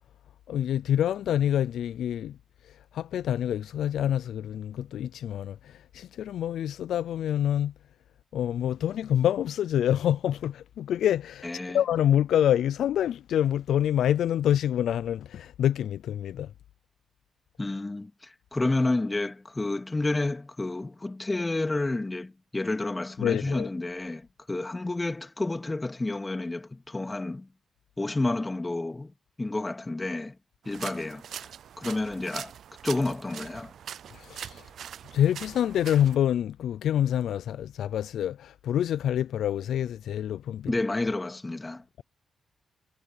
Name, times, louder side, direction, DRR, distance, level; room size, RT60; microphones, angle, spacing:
voice 1, 0.5-2.4 2.6-7.7 8.3-11.5 11.7-16.5 23.2-23.7 34.1-34.7 35.1-40.7, left 10 dB, 75° left, 0.6 m, -26 dB
voice 2, 11.4-11.8 17.6-27.5 28.0-29.1 29.4-30.4 30.6-31.2 31.8-32.5 32.8-33.7 40.7-41.8, left 2 dB, 25° left, 2.6 m, -30 dB
sound 1, 30.6-36.2, right 9 dB, 70° right, 0.6 m, -42 dB
supercardioid pair, 45°, 0 cm